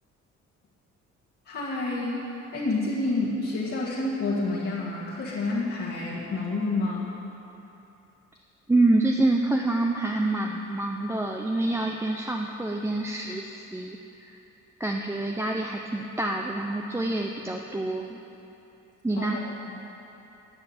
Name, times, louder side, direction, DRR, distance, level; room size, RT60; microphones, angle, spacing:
voice 1, 1.5-2.2 2.5-7.1 19.1-19.8, left 2 dB, 55° left, -8 dB, 1.9 m, -29 dB
voice 2, 8.7-14.4 14.8-18.2 19.0-19.4, right 2 dB, 10° right, 1 dB, 0.5 m, -27 dB
9.9 x 6.0 x 8.6 m, 2.9 s
cardioid pair, 90°, 30 cm